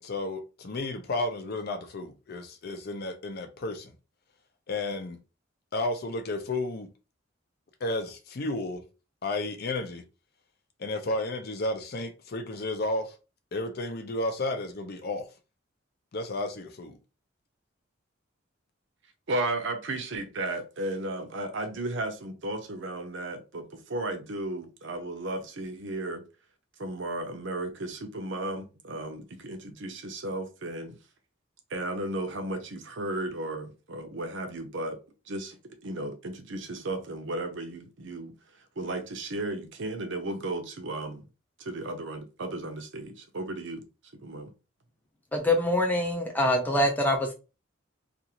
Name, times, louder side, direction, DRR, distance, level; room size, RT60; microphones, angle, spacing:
voice 1, 0.0-3.9 4.7-5.2 5.7-6.9 7.8-8.8 9.2-10.0 10.8-13.1 13.5-15.3 16.1-16.9, left 2 dB, 50° left, 0.5 m, -32 dB
voice 2, 19.3-26.2 26.8-30.9 31.7-35.0 35.3-35.6 35.8-38.3 38.8-41.2 41.6-43.8 44.2-44.5, right 2 dB, 60° right, 0.7 m, -34 dB
voice 3, 45.3-47.3, left 1 dB, 10° left, 0.6 m, -24 dB
2.5 x 2.5 x 2.8 m
head